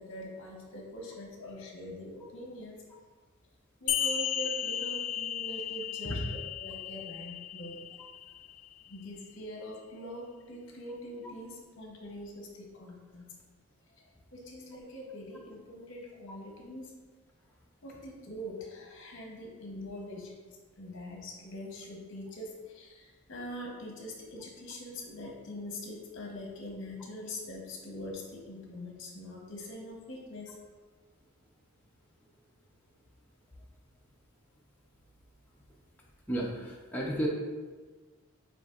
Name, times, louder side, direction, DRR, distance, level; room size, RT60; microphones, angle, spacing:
voice 1, 0.0-2.8 3.8-7.8 8.9-13.3 14.0-14.1 14.3-16.9 17.8-20.4 20.8-30.6, left 1 dB, 55° left, 0 dB, 0.8 m, -43 dB
sound 1, 3.9-8.9, left 10 dB, 80° left, 0.4 m, -35 dB
voice 2, 36.3-37.3, equal, 10° left, -4 dB, 0.5 m, -32 dB
7.2 x 2.7 x 2.4 m, 1.4 s
head